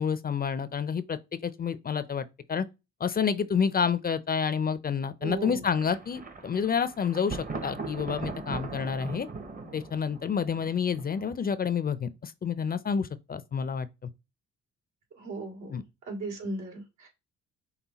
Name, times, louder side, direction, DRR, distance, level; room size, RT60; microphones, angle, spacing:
voice 1, 0.0-2.7 3.0-9.3 9.7-14.1 15.7-15.8, left 6 dB, 30° left, 0.4 m, -29 dB
voice 2, 5.2-5.6 15.2-15.8 16.1-17.1, right 2 dB, 80° right, 2.2 m, -36 dB
Thunder, 5.7-11.5, right 3 dB, 30° right, 0.8 m, -40 dB
5.6 x 2.2 x 4.0 m
cardioid pair, 90°, 30 cm